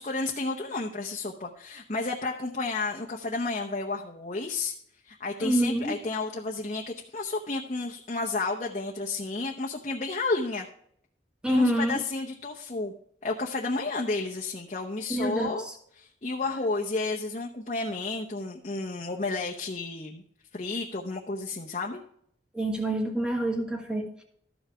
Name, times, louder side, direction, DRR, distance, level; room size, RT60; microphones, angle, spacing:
voice 1, 0.0-4.7 5.0-10.7 11.5-12.9 13.2-15.7 15.9-20.2 20.5-22.0, left 3 dB, 40° left, 0 dB, 0.8 m, -31 dB
voice 2, 5.4-6.0 11.4-12.0 15.1-15.5 22.5-24.2, right 1 dB, 5° right, 2 dB, 1.6 m, -27 dB
13.0 x 5.6 x 4.9 m, 0.66 s
head